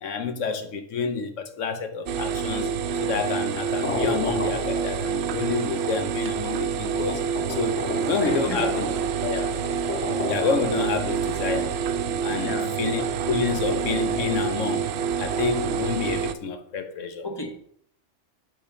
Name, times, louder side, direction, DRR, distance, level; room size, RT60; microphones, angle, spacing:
voice 1, 0.0-7.2 7.5-7.8 8.0-8.9 9.2-9.6 10.2-11.7 12.2-14.9 15.2-17.2, left 5 dB, 85° left, 1.2 m, -29 dB
sound 1, 2.1-16.3, right 7 dB, 65° right, 0.8 m, -27 dB
sound 2, 3.8-5.4 6.2-6.3 6.9-11.5 13.3-14.3, left 2 dB, 65° left, 2.0 m, -33 dB
voice 2, 8.2-8.7 12.4-12.8 17.2-17.6, left 2 dB, 20° left, 0.9 m, -34 dB
8.5 x 3.4 x 6.1 m
omnidirectional pair, 1.3 m